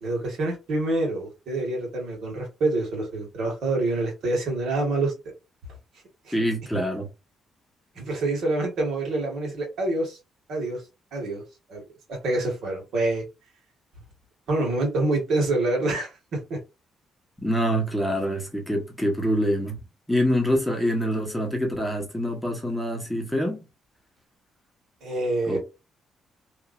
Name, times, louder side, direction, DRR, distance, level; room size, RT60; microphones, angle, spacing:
voice 1, 0.0-5.1 6.3-6.4 7.9-10.2 10.5-10.8 11.1-11.4 11.7-11.8 12.1-13.2 14.5-16.6 25.0-25.6, right 2 dB, 75° right, 1.6 m, -26 dB
voice 2, 6.3-7.1 17.4-19.8 20.1-23.6 25.5-25.6, equal, 5° left, 1.0 m, -25 dB
3.0 x 2.6 x 2.4 m
cardioid pair, 90°, 0 cm